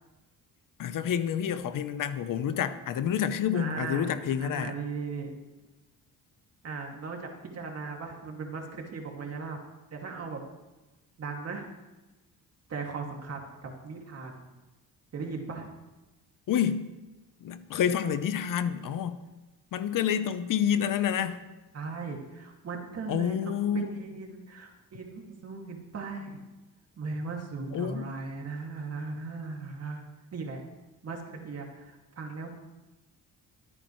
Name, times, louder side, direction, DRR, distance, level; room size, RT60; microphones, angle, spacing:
voice 1, 0.8-4.7 16.5-16.9 17.4-19.2 19.7-21.5 23.1-23.9 27.7-28.1, left 9 dB, 60° left, 0.8 m, -28 dB
voice 2, 3.5-5.3 6.6-9.6 9.9-10.4 11.2-11.7 12.7-14.5 15.1-15.7 21.7-26.4 27.0-30.0 30.3-30.6 31.0-32.5, right 4 dB, 45° right, 2.3 m, -38 dB
23.5 x 9.0 x 3.2 m
cardioid pair, 115°, 36 cm